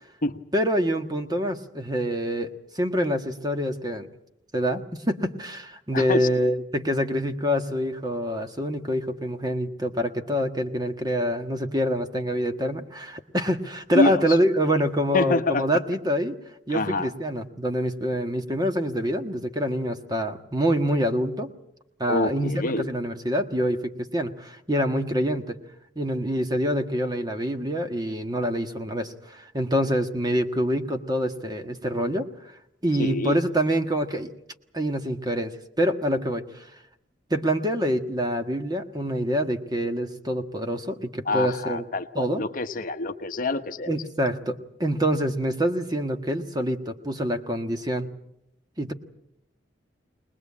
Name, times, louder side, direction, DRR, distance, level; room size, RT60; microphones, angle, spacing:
voice 1, 0.5-4.1 4.5-16.4 16.7-21.5 22.0-25.6 25.9-32.3 32.8-34.3 34.7-36.6 37.3-41.8 42.1-42.4 43.9-48.1 48.8-48.9, equal, 20° right, 6 dB, 1.6 m, -26 dB
voice 2, 5.9-6.3 13.9-14.2 14.7-14.8 15.1-15.6 16.7-17.1 22.1-22.9 33.0-33.4 41.2-43.9, left 2 dB, 50° left, 8 dB, 1.0 m, -26 dB
22.5 x 20.0 x 8.5 m, 0.77 s
head